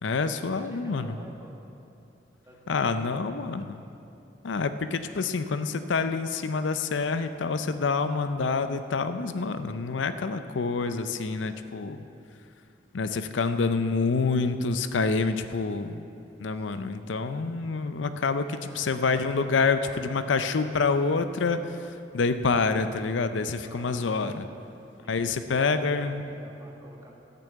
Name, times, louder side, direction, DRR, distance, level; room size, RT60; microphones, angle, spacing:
voice 1, 0.0-1.2 2.7-3.8 4.4-12.0 12.9-16.1 16.4-24.5 25.1-26.2, left 4 dB, 85° left, 10 dB, 0.6 m, -27 dB
voice 2, 0.6-1.6 2.5-3.5 5.0-5.2 16.5-17.0 18.5-19.0 19.4-20.6 23.6-24.6 25.0-27.1, equal, 15° right, -1 dB, 1.6 m, -49 dB
12.0 x 6.9 x 8.3 m, 2.7 s
head